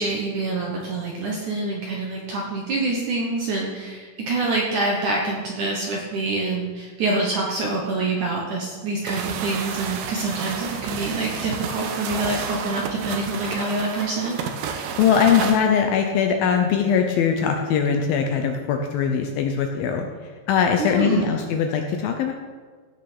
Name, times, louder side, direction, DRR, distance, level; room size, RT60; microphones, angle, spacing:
voice 1, 0.0-14.4 20.8-21.3, right 2 dB, 65° right, -1 dB, 2.0 m, -26 dB
sound 1, 9.1-15.6, right 6 dB, 85° right, 1.9 m, -30 dB
voice 2, 15.0-20.1 20.5-22.3, left 7 dB, 80° left, 4 dB, 2.1 m, -21 dB
16.5 x 6.3 x 6.1 m, 1.5 s
omnidirectional pair, 5.1 m